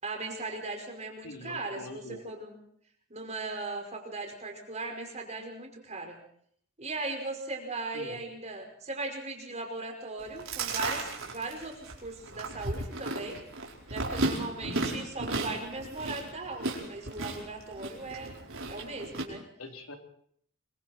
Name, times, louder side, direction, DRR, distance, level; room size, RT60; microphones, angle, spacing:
voice 1, 0.0-2.6 3.1-6.2 6.8-13.4 13.9-18.3 18.7-19.4, right 3 dB, 35° right, 2 dB, 5.3 m, -38 dB
voice 2, 1.2-2.2 7.9-8.2 14.6-15.0 19.6-20.0, left 1 dB, 75° left, 3 dB, 3.6 m, -43 dB
Chewing mastication, 10.2-19.2, right 2 dB, 65° right, 4.8 m, -35 dB
25.5 x 24.0 x 4.5 m, 0.63 s
head